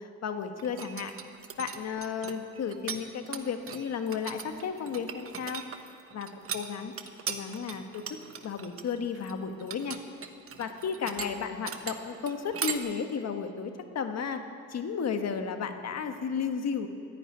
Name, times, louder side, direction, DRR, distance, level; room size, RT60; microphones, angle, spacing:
voice 1, 0.2-1.1 1.6-5.6 6.1-6.9 7.3-8.0 8.4-10.0 10.6-14.4 14.7-16.9, left 6 dB, 60° left, 6 dB, 1.5 m, -33 dB
sound 1, 0.6-3.0 3.3-12.8, right 7 dB, 45° right, 1.2 m, -38 dB
13.5 x 10.0 x 9.6 m, 2.4 s
cardioid pair, 90°, 30 cm